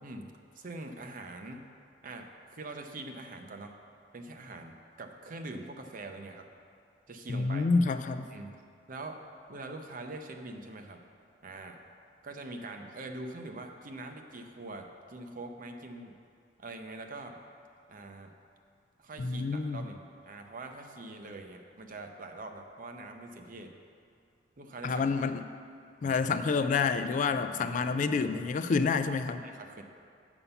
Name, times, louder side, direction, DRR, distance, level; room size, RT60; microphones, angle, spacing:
voice 1, 0.0-1.6 2.0-3.7 4.1-6.5 7.1-7.7 8.3-8.5 8.9-9.2 9.5-11.0 11.4-11.8 12.2-16.1 16.6-17.4 17.9-18.3 19.0-23.7 24.6-25.0 27.2-27.6 28.7-28.8 29.4-29.8, right 2 dB, 50° right, 4 dB, 0.7 m, -43 dB
voice 2, 7.3-8.3 19.2-19.9 24.8-25.5 26.0-29.5, left 4 dB, 45° left, 10 dB, 0.3 m, -28 dB
7.1 x 5.5 x 6.9 m, 2.3 s
head